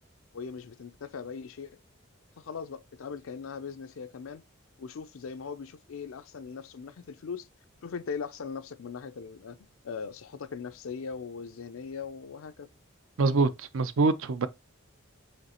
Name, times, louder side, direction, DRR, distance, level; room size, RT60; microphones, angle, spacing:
voice 1, 0.3-1.8 2.4-4.4 4.8-7.5 7.8-9.6 9.8-12.7, left 5 dB, 75° left, 0.4 m, -39 dB
voice 2, 13.2-14.5, right 3 dB, 75° right, 0.5 m, -25 dB
5.0 x 3.2 x 2.9 m
head